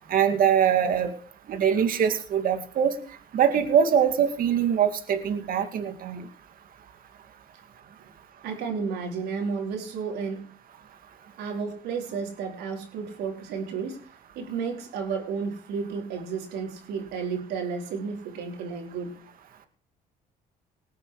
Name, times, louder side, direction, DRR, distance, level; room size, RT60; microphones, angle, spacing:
voice 1, 0.1-1.1 1.5-2.9 3.3-6.2, right 8 dB, 55° right, 7 dB, 2.4 m, -23 dB
voice 2, 8.4-10.4 11.4-14.0 14.3-19.1, right 5 dB, 80° right, 1 dB, 4.5 m, -32 dB
20.0 x 8.4 x 4.9 m, 0.43 s
cardioid pair, 110°, 17 cm